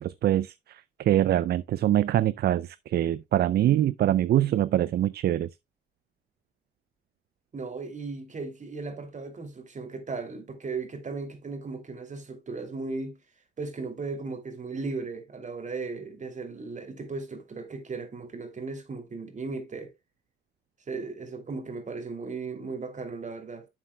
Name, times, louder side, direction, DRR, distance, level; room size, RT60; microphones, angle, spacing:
voice 1, 0.0-5.5, right 12 dB, 55° right, 0.4 m, -24 dB
voice 2, 7.5-13.2 13.6-19.9 20.9-23.7, right 4 dB, 40° right, 2.8 m, -36 dB
11.0 x 7.3 x 2.2 m
cardioid pair, 90°, 20 cm